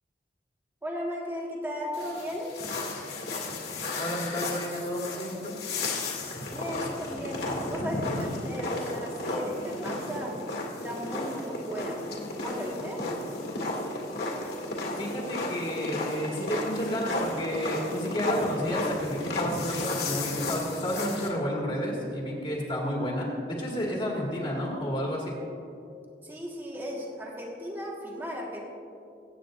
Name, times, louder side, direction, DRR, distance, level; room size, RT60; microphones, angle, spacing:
voice 1, 0.8-2.5 6.5-7.4 7.7-10.3 10.8-12.0 12.4-13.0 26.2-28.6, equal, 10° right, -3 dB, 1.5 m, -36 dB
sound 1, 1.9-21.3, left 2 dB, 65° left, 2.1 m, -33 dB
voice 2, 4.0-5.6 15.0-25.4, equal, 30° left, -3 dB, 1.9 m, -31 dB
23.0 x 9.1 x 2.5 m, 2.6 s
head